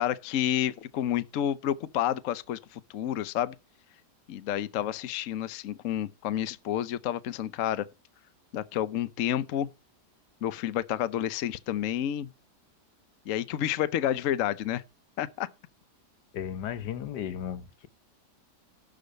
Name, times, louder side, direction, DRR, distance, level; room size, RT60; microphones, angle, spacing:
voice 1, 0.0-3.5 4.3-7.9 8.5-9.7 10.4-12.3 13.3-14.8 15.2-15.5, left 11 dB, 60° left, 1.0 m, -30 dB
voice 2, 16.3-17.9, left 9 dB, 80° left, 1.4 m, -35 dB
12.0 x 5.0 x 6.6 m
omnidirectional pair, 1.8 m